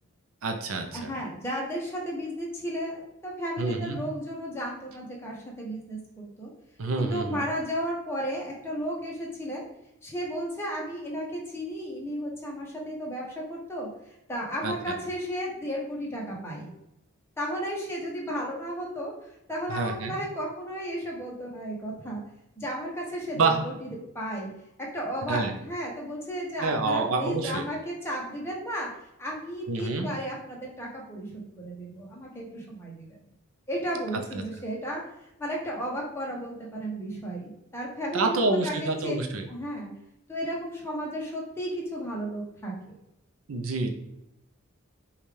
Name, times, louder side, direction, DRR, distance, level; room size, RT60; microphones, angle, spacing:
voice 1, 0.4-1.1 3.6-4.0 6.8-7.4 14.6-14.9 19.7-20.2 23.4-23.6 25.3-25.5 26.6-27.6 29.7-30.1 38.1-39.5 43.5-43.9, right 3 dB, 75° right, 5 dB, 0.6 m, -27 dB
voice 2, 0.9-6.5 7.0-9.7 10.0-13.9 14.3-16.7 17.4-19.1 19.5-22.2 22.6-23.9 24.1-24.5 24.8-28.9 29.2-33.2 33.7-35.0 35.4-39.2 39.5-39.9 40.3-42.9, equal, 10° left, -3 dB, 0.8 m, -34 dB
5.3 x 2.4 x 3.2 m, 0.84 s
head